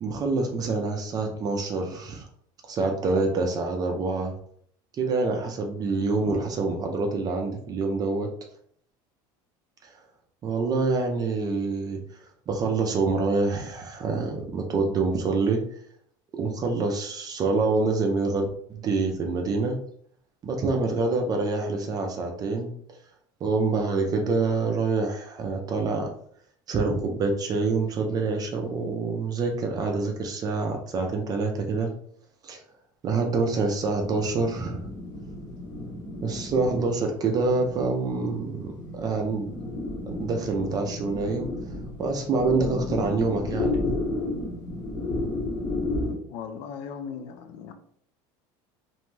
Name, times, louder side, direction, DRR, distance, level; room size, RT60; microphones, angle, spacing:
voice 1, 0.0-2.2 2.7-4.3 4.9-8.3 9.8-9.9 10.4-12.0 12.5-15.6 16.3-19.8 20.4-22.7 23.4-26.1 26.7-31.9 32.4-32.6 33.0-34.9 36.2-39.5 40.2-41.5 42.0-43.7, right 3 dB, 35° right, 2 dB, 0.4 m, -26 dB
sound 1, 33.9-46.1, left 2 dB, 45° left, 1.0 m, -33 dB
voice 2, 46.3-47.7, left 7 dB, 60° left, 7 dB, 0.4 m, -37 dB
2.6 x 2.1 x 3.1 m, 0.63 s
supercardioid pair, 125°, 11 cm